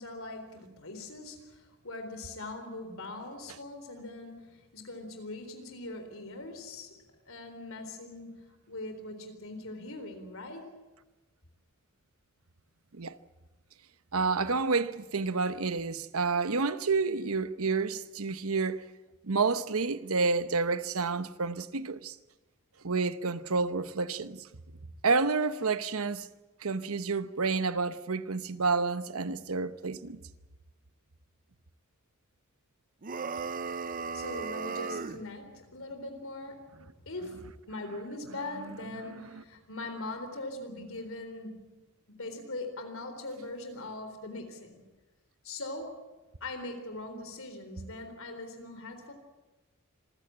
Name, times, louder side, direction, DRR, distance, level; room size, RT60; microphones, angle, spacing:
voice 1, 0.0-7.0 7.3-10.8 34.1-41.8 42.2-44.8 45.4-46.1 46.4-49.1, left 2 dB, 70° left, 4.0 m, -41 dB
voice 2, 14.1-18.8 19.2-22.2 22.8-24.5 25.0-26.3 26.6-30.2 38.6-39.4, right 4 dB, 80° right, 1.0 m, -29 dB
sound 1, 33.0-35.2, right 5 dB, 40° right, 0.7 m, -36 dB
26.5 x 15.5 x 8.9 m
head